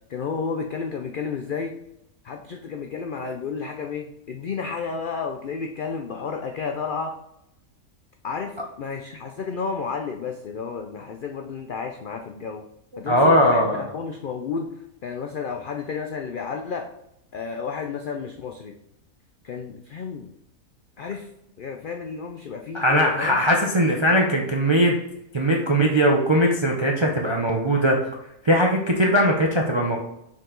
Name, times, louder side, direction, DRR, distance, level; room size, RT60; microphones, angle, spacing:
voice 1, 0.1-1.7 2.2-7.1 8.2-12.6 13.0-14.7 15.0-16.9 17.3-18.7 19.4-20.3 21.0-21.3 21.6-23.5, left 5 dB, 80° left, 4 dB, 0.4 m, -31 dB
voice 2, 13.1-13.8 22.7-25.0 25.3-28.0 28.4-30.0, equal, 50° right, 0 dB, 0.3 m, -20 dB
5.9 x 4.6 x 3.8 m, 0.83 s
omnidirectional pair, 1.5 m